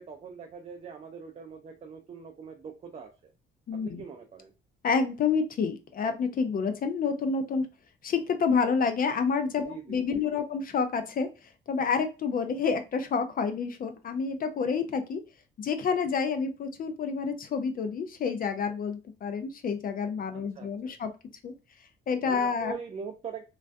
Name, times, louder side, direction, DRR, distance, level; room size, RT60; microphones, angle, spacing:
voice 1, 0.0-3.3 3.8-4.5 9.6-10.4 20.6-21.0 22.2-23.4, right 5 dB, 35° right, 3 dB, 0.4 m, -42 dB
voice 2, 3.7-4.0 4.8-7.7 8.0-15.2 15.6-21.1 21.4-21.5 22.1-22.8, left 5 dB, 45° left, 7 dB, 0.4 m, -29 dB
2.3 x 2.1 x 2.5 m, 0.30 s
cardioid pair, 90°, 20 cm